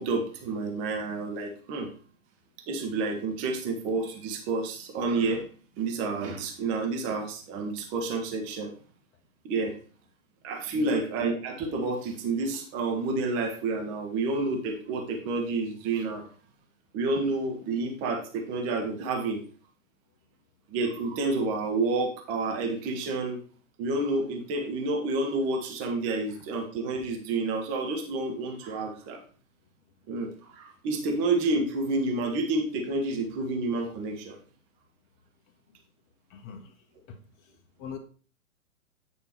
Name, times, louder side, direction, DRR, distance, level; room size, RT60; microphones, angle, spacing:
voice 1, 0.0-1.9 2.7-5.4 5.8-8.7 9.4-9.7 10.4-16.3 16.9-19.4 20.7-23.4 23.8-29.2 30.1-34.4, right 3 dB, 25° right, 3 dB, 1.5 m, -29 dB
voice 2, 36.3-36.7 37.1-37.2 37.8-38.0, left 6 dB, 25° left, 4 dB, 1.4 m, -40 dB
9.3 x 5.3 x 4.6 m, 0.39 s
hypercardioid pair, 130°, 43 cm